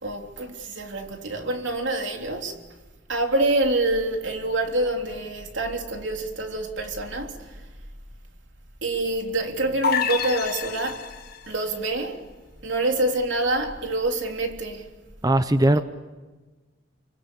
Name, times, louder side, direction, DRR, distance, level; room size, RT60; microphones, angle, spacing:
voice 1, 0.0-2.6 3.1-7.4 8.8-11.0 11.5-12.2 12.6-14.9, right 2 dB, 75° right, 3.5 m, -26 dB
sound 1, 9.8-11.5, left 7 dB, 55° left, 1.8 m, -27 dB
voice 2, 15.2-15.8, right 1 dB, 20° right, 0.8 m, -19 dB
29.0 x 24.5 x 8.3 m
head